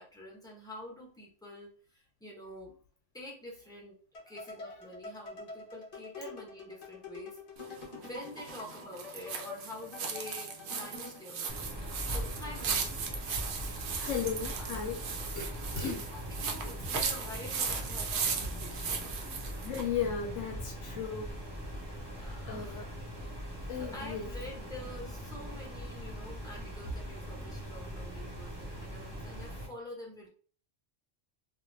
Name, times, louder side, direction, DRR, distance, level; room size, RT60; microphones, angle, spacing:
voice 1, 0.0-2.7 3.1-3.9 4.3-11.7 12.1-12.9 16.1-19.2 22.0-22.8 23.8-30.3, left 1 dB, 5° left, 0.8 m, -47 dB
sound 1, 4.1-11.3, left 4 dB, 40° left, 0.7 m, -47 dB
sound 2, 7.6-19.9, right 6 dB, 65° right, 0.8 m, -37 dB
sound 3, 11.5-29.7, equal, 20° right, 1.0 m, -41 dB
voice 2, 13.7-15.0 15.4-16.1 19.6-21.3 22.5-22.9 23.7-24.3, left 7 dB, 80° left, 0.9 m, -36 dB
2.4 x 2.3 x 3.2 m
omnidirectional pair, 1.3 m